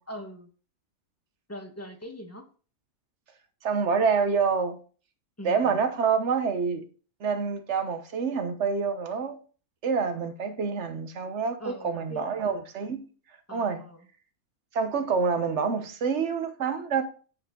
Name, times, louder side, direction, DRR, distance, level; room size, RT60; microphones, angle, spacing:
voice 1, 0.1-0.5 1.5-2.4 5.4-5.8 11.6-12.4 13.5-14.0, equal, 10° left, 1.2 m, -41 dB
voice 2, 3.6-4.8 5.4-6.9 7.2-9.4 9.8-13.1 13.5-13.8 14.7-17.0, right 5 dB, 55° right, 1.2 m, -27 dB
7.7 x 5.4 x 3.6 m
omnidirectional pair, 1.5 m